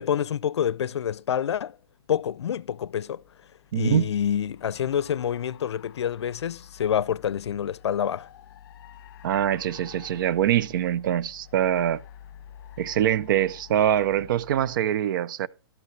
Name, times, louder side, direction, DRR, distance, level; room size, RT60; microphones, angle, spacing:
voice 1, 0.0-1.7 2.1-3.2 3.7-8.3, left 9 dB, 90° left, 0.5 m, -27 dB
sound 1, 1.3-14.8, left 10 dB, 45° left, 1.4 m, -49 dB
voice 2, 3.7-4.0 9.2-12.0 12.8-15.5, right 11 dB, 50° right, 0.5 m, -24 dB
12.5 x 8.2 x 3.2 m
hypercardioid pair, 155°, 14 cm